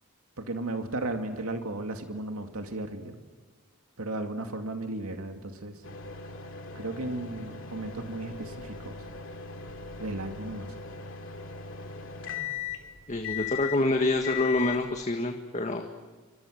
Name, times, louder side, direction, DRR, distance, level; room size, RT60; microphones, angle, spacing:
voice 1, 0.4-3.2 4.0-5.8 6.7-9.0 10.0-10.7, right 2 dB, 90° right, 5 dB, 2.4 m, -35 dB
sound 1, 5.8-15.0, left 7 dB, 60° left, 2.7 m, -39 dB
voice 2, 13.1-15.9, left 2 dB, 35° left, 4 dB, 1.6 m, -27 dB
27.5 x 25.5 x 6.6 m, 1.4 s
head